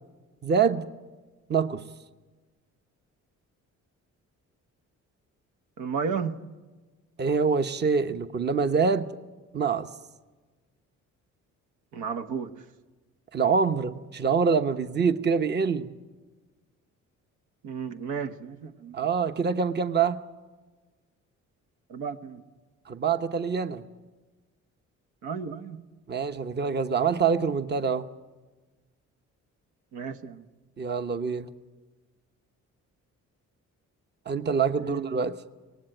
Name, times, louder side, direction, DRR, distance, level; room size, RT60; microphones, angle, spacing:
voice 1, 0.4-0.8 1.5-1.8 7.2-9.1 9.5-9.9 13.3-15.9 18.9-20.2 22.9-23.8 26.1-28.1 30.8-31.5 34.3-35.3, right 5 dB, 35° right, 10 dB, 1.0 m, -25 dB
voice 2, 5.8-6.4 11.9-12.5 17.6-19.0 21.9-22.4 25.2-25.8 29.9-30.4 34.8-35.3, right 6 dB, 85° right, 8 dB, 1.2 m, -33 dB
24.0 x 19.0 x 9.0 m, 1.3 s
cardioid pair, 90°, 30 cm